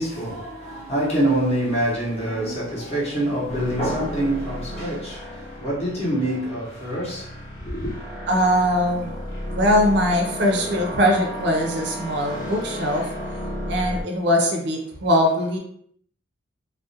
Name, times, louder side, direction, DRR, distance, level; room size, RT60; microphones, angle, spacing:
voice 1, 0.0-7.9, right 1 dB, 30° left, 0.7 m, -25 dB
sound 1, 3.5-14.0, equal, 75° left, 0.7 m, -33 dB
voice 2, 8.3-9.2 9.5-13.1 13.7-15.6, equal, 55° right, 0.5 m, -21 dB
2.4 x 2.1 x 2.7 m
head